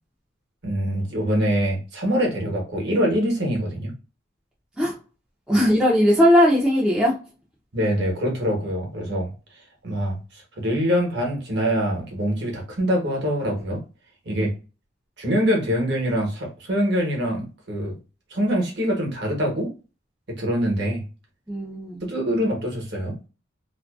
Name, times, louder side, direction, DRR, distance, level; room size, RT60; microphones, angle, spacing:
voice 1, 0.6-3.9 7.7-9.3 9.8-13.8 14.3-14.5 15.2-18.0 18.3-19.7 20.4-21.0 22.0-23.1, equal, 55° right, 0.9 m, -24 dB
voice 2, 5.5-7.2 14.3-14.5 21.5-22.0, equal, 5° right, 0.4 m, -18 dB
2.5 x 2.2 x 2.2 m
head